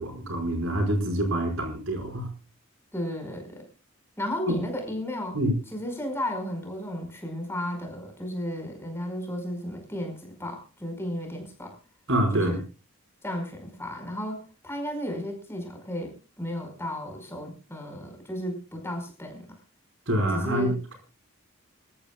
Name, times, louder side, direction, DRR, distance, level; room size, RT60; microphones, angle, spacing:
voice 1, 0.0-2.3 4.5-4.6 5.3-5.6 12.1-12.6 20.1-20.7, right 1 dB, 70° right, 4 dB, 5.2 m, -26 dB
voice 2, 2.9-3.6 4.2-5.4 5.7-11.7 12.3-12.6 13.2-19.6 20.3-20.8, left 1 dB, 10° left, 3 dB, 5.0 m, -34 dB
26.5 x 14.0 x 2.3 m, 0.34 s
head